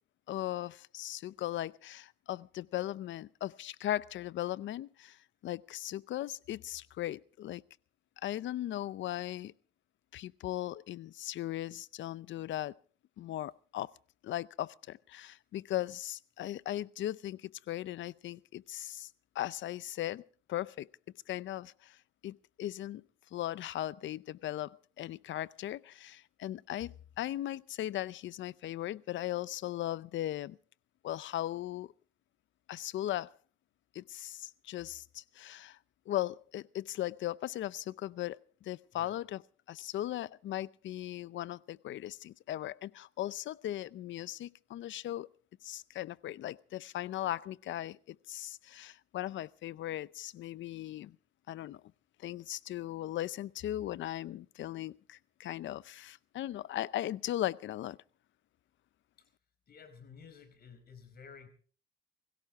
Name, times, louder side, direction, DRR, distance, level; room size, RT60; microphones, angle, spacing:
voice 1, 0.3-5.2 5.4-7.6 8.2-9.5 10.1-12.7 13.2-13.9 14.2-19.1 19.3-20.2 20.5-20.9 21.3-22.0 22.2-23.0 23.3-30.6 31.0-31.9 32.7-33.3 33.9-35.8 36.1-39.4 39.7-45.3 45.6-51.2 51.5-51.8 52.2-58.0, left 13 dB, 70° left, 0.6 m, -38 dB
voice 2, 59.7-61.5, left 6 dB, 50° left, 4.8 m, -53 dB
21.5 x 16.5 x 3.6 m
cardioid pair, 90°, 20 cm